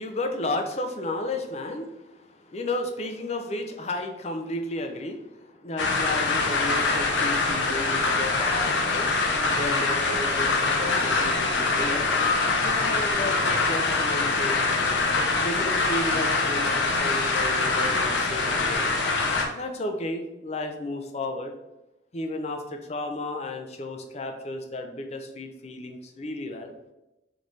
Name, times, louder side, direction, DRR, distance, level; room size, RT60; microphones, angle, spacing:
voice 1, 0.0-9.1 9.5-12.1 12.6-14.7 15.4-18.9 19.5-21.5 22.1-26.7, left 2 dB, 35° left, 5 dB, 0.5 m, -33 dB
sound 1, 5.8-19.5, left 3 dB, 85° left, 0.7 m, -24 dB
4.0 x 3.3 x 3.2 m, 0.94 s
head